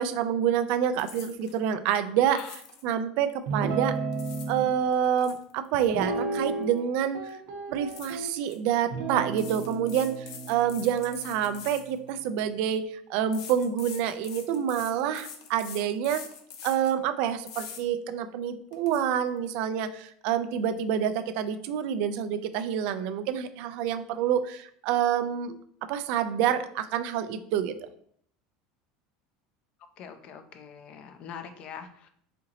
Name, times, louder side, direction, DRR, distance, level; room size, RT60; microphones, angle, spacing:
voice 1, 0.0-2.4 2.8-4.0 4.5-7.3 7.7-10.1 10.5-16.2 16.6-25.6 25.9-27.7, right 9 dB, 60° right, 10 dB, 0.4 m, -27 dB
sound 1, 1.0-1.6 2.3-2.9 3.9-4.6 4.9-6.8 7.1-7.3 7.9-8.6 9.3-12.5 13.3-17.0 17.5-17.8 18.3-18.4 18.7-19.0, left 7 dB, 85° left, 0.7 m, -44 dB
Guitar, 3.5-4.7 5.9-6.9 7.1-8.3 8.9-12.4, right 3 dB, 85° right, 0.8 m, -34 dB
voice 2, 30.0-32.1, left 7 dB, 45° left, 8 dB, 0.5 m, -43 dB
4.2 x 2.8 x 3.8 m, 0.65 s
supercardioid pair, 145°, 3 cm